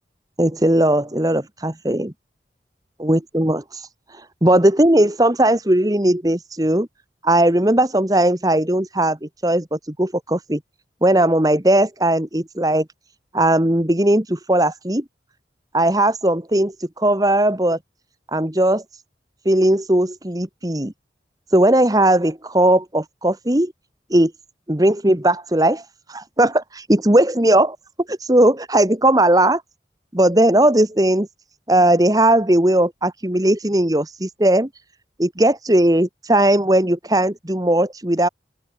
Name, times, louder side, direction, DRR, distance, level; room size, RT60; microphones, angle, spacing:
voice 1, 0.4-2.1 3.0-3.6 4.4-6.9 7.2-10.6 11.0-12.8 13.3-15.0 15.7-17.8 18.3-18.8 19.4-20.9 21.5-23.7 24.1-24.3 24.7-25.8 26.1-27.8 28.1-29.6 30.1-31.3 31.7-34.7 35.2-38.3, right 1 dB, 20° right, 1.5 m, -18 dB
open air
head